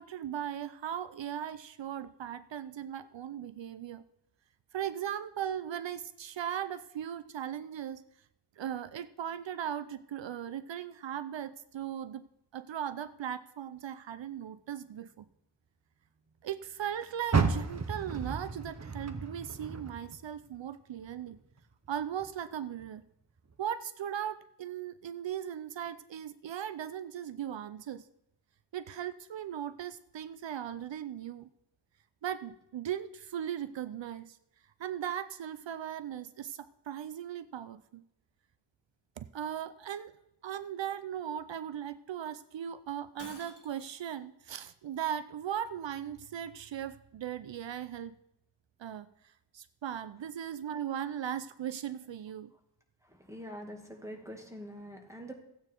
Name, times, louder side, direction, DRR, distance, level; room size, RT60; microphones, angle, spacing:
voice 1, 0.0-4.0 4.7-8.0 8.6-12.2 12.5-15.2 16.4-21.4 21.9-23.0 23.6-28.1 28.7-31.5 32.2-34.4 34.8-38.0 39.2-40.1 40.4-48.1 48.8-52.5, right 9 dB, 80° right, 14 dB, 0.6 m, -38 dB
Car, 17.3-20.6 21.0-22.3 22.8-22.9 23.5-23.6, right 4 dB, 35° right, 1.0 m, -33 dB
Shatter, 43.2-44.0, left 2 dB, 30° left, 2.6 m, -50 dB
voice 2, 53.0-55.3, equal, 5° right, 3 dB, 2.1 m, -45 dB
15.0 x 9.0 x 4.5 m, 0.81 s
wide cardioid pair, 95°, 44 cm